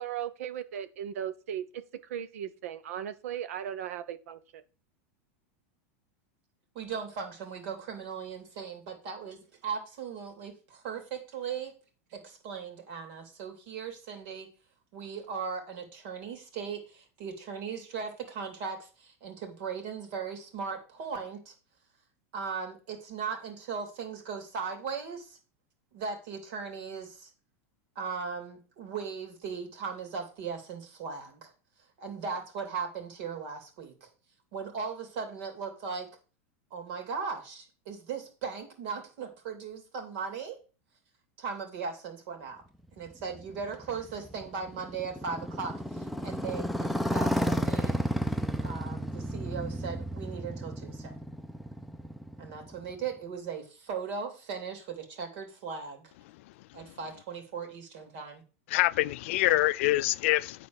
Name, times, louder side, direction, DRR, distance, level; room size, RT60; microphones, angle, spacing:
voice 1, 0.0-1.8 2.1-4.6, right 10 dB, 80° right, 1.0 m, -37 dB
voice 2, 6.7-11.7 12.1-14.5 14.9-21.5 22.3-25.4 25.9-27.3 27.9-31.5 32.0-34.1 34.5-36.1 36.7-40.6 41.4-42.6 43.0-48.0 48.6-51.1 52.4-56.1 56.7-58.4, right 5 dB, 55° right, 3.1 m, -38 dB
Motorcycle, 43.1-53.0, equal, ahead, 0.5 m, -33 dB
voice 3, 58.7-60.7, left 17 dB, 60° left, 0.4 m, -25 dB
9.6 x 4.3 x 6.5 m
supercardioid pair, 155°, 8 cm